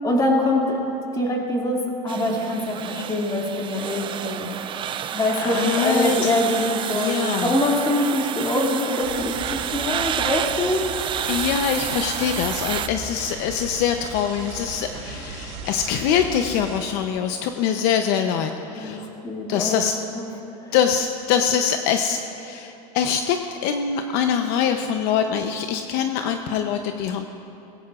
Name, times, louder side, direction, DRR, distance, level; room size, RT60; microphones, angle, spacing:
voice 1, 0.0-0.8 1.1-4.5 5.1-11.3 18.8-19.8 20.1-20.2 20.6-20.7, left 1 dB, 20° left, -1 dB, 2.3 m, -24 dB
sound 1, 2.1-12.9, right 9 dB, 25° right, 0.4 m, -29 dB
voice 2, 5.4-6.2 6.5-6.7 6.9-7.5 11.3-19.1 19.5-20.0 20.7-27.3, left 8 dB, 55° left, 6 dB, 0.7 m, -24 dB
sound 2, 9.0-16.8, right 4 dB, 70° right, 3.8 m, -37 dB
20.5 x 17.0 x 2.5 m, 2.9 s
supercardioid pair, 130°, 20 cm